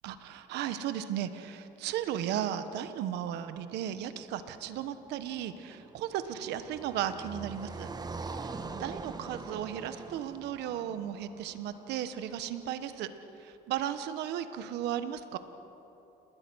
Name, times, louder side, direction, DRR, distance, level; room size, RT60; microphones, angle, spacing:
voice 1, 0.0-7.9 8.3-13.1 13.4-15.4, right 10 dB, 85° right, 11 dB, 1.2 m, -35 dB
Car passing by, 5.1-12.3, right 4 dB, 25° right, 1.3 m, -43 dB
29.0 x 20.0 x 6.3 m, 3.0 s
cardioid pair, 110°, 17 cm